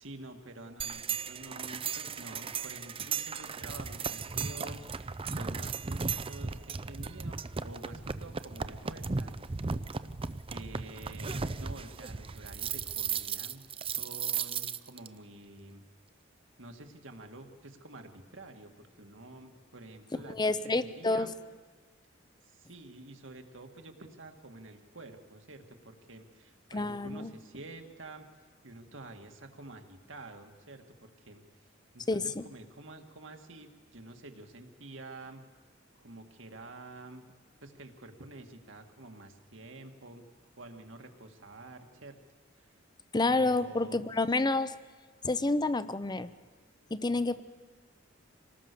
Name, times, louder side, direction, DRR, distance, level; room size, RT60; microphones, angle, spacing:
voice 1, 0.0-9.4 10.5-15.8 16.6-21.3 22.4-28.3 28.6-31.4 31.9-35.4 36.0-37.2 37.6-40.2 40.5-42.2 42.6-42.7 43.3-44.2, right 2 dB, 70° right, 5 dB, 2.1 m, -49 dB
sound 1, 0.8-15.1, right 5 dB, 30° right, 0.6 m, -36 dB
voice 2, 20.3-21.3 26.7-27.3 32.1-32.4 43.1-44.7 45.2-46.3 46.9-47.4, left 2 dB, 20° left, 14 dB, 0.7 m, -29 dB
26.5 x 19.0 x 6.9 m, 1.5 s
head